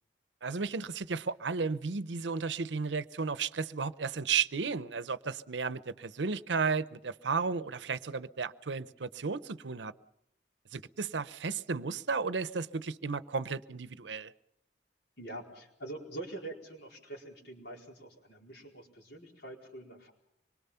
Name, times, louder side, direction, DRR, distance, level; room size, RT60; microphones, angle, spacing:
voice 1, 0.4-9.9 10.7-14.3, right 5 dB, 90° right, 0.7 m, -33 dB
voice 2, 15.2-20.1, right 2 dB, 70° left, 4.6 m, -45 dB
25.5 x 23.0 x 5.7 m
head